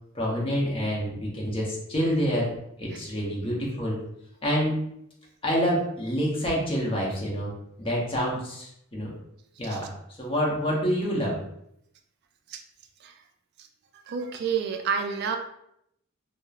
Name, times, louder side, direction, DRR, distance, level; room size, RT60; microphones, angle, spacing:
voice 1, 0.1-2.5 2.8-4.0 4.4-4.8 5.4-7.5 7.8-9.1 9.6-9.9 10.2-11.5, equal, 25° left, -4 dB, 0.7 m, -27 dB
voice 2, 13.9-15.4, right 6 dB, 55° right, 5 dB, 0.3 m, -30 dB
2.9 x 2.0 x 2.3 m, 0.76 s
head